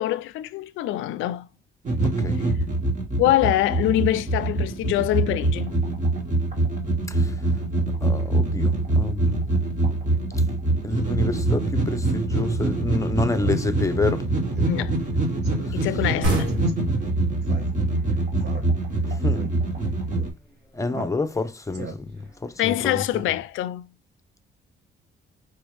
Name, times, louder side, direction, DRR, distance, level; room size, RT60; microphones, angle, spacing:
voice 1, 0.0-1.5 3.2-5.8 14.7-14.9 15.7-16.5 22.6-23.9, left 14 dB, 90° left, 0.4 m, -24 dB
sound 1, 1.8-20.3, right 2 dB, 40° right, 1.7 m, -24 dB
voice 2, 2.0-2.4 7.1-7.3 8.0-9.5 10.8-14.3 14.7-14.9 15.7-15.9 19.1-19.5 20.7-23.2, left 3 dB, 15° left, 0.7 m, -29 dB
Speech synthesizer, 12.3-12.5 12.9-13.0 13.3-13.6 14.0-14.1 14.5-14.7 15.0-15.1 15.4-15.7 16.5-16.7 17.4-18.0 18.4-19.0 19.3-19.5 20.1-20.3 20.9-21.4 21.7-22.3, right 4 dB, 55° right, 1.2 m, -37 dB
sound 2, 16.2-19.6, right 1 dB, 85° right, 1.6 m, -30 dB
4.7 x 3.0 x 3.1 m
cardioid pair, 90°, 20 cm